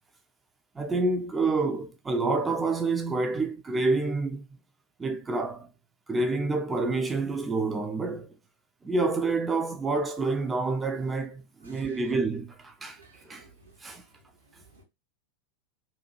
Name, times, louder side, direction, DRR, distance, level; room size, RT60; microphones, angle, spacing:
voice 1, 0.8-4.5 5.0-5.7 6.1-8.3 8.8-13.5 13.8-14.0, right 3 dB, 15° right, 0.3 m, -28 dB
voice 2, 11.6-12.0 13.0-13.8 14.5-14.8, right 3 dB, 80° right, 1.0 m, -56 dB
2.6 x 2.3 x 2.8 m
figure-of-eight pair, 90°, 0 cm